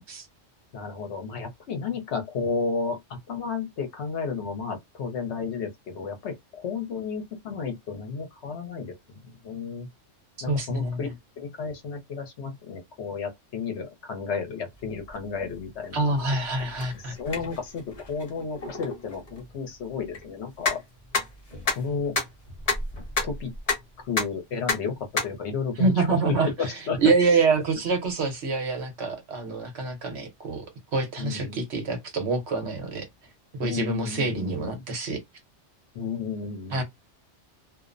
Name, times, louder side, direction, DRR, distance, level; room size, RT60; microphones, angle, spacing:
voice 1, 0.7-8.9 9.2-9.9 10.4-11.1 11.4-16.1 16.9-20.8 21.7-22.1 23.2-23.5 24.0-27.4 31.2-31.6 33.6-34.8 35.9-36.8, left 5 dB, 70° left, 0.9 m, -32 dB
voice 2, 10.5-11.1 15.9-17.1 25.8-30.7 30.9-33.1 33.6-35.2 36.7-36.8, right 3 dB, 65° right, 1.1 m, -26 dB
sound 1, 14.7-24.4 24.7-25.3, left 3 dB, 35° left, 0.7 m, -32 dB
2.6 x 2.0 x 2.4 m
omnidirectional pair, 1.2 m